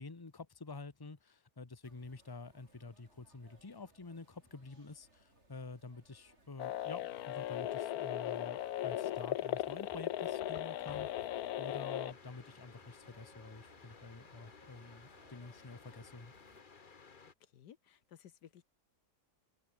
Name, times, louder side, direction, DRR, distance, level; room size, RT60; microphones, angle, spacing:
voice 1, 0.0-11.3 11.6-16.3, left 3 dB, 15° left, 1.2 m, -49 dB
sound 1, 1.8-16.6, right 2 dB, 40° right, 5.9 m, -66 dB
sound 2, 6.6-12.1, left 12 dB, 70° left, 1.2 m, -37 dB
sound 3, 12.1-17.3, left 5 dB, 35° left, 1.3 m, -58 dB
voice 2, 17.5-18.6, left 9 dB, 90° left, 1.7 m, -57 dB
omnidirectional pair, 1.7 m